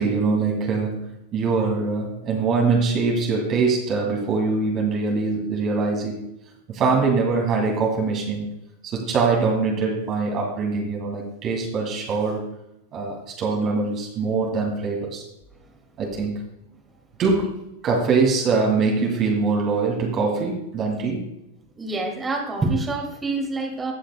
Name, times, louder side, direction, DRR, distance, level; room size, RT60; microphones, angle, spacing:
voice 1, 0.0-6.2 6.7-8.5 8.8-12.4 12.9-15.2 16.0-16.4 17.2-21.2, right 4 dB, 35° right, -1 dB, 2.3 m, -23 dB
voice 2, 21.8-23.9, right 3 dB, 15° right, 1 dB, 2.4 m, -26 dB
19.5 x 6.5 x 2.2 m, 0.87 s
hypercardioid pair, 95°, 0 cm